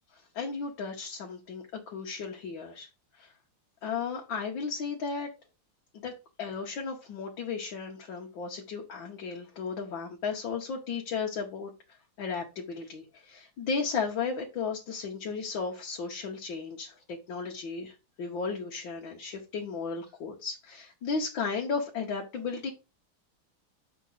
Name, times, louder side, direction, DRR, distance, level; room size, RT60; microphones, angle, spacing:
voice 1, 0.4-2.9 3.2-3.3 3.8-5.3 5.9-6.1 6.4-11.7 12.2-22.7, left 5 dB, 75° left, 0 dB, 1.8 m, -35 dB
7.3 x 4.6 x 4.0 m, 0.29 s
omnidirectional pair, 2.1 m